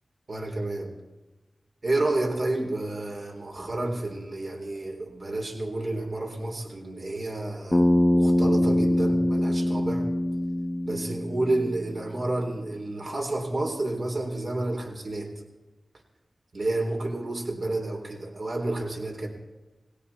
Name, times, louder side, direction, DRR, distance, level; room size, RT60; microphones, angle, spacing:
voice 1, 0.3-0.9 1.8-10.1 10.8-15.3 16.5-19.3, right 2 dB, 60° right, 1 dB, 4.0 m, -30 dB
Bass guitar, 7.7-12.0, left 1 dB, 20° left, 1.1 m, -23 dB
20.0 x 16.5 x 4.4 m, 1.1 s
cardioid pair, 45°, 0 cm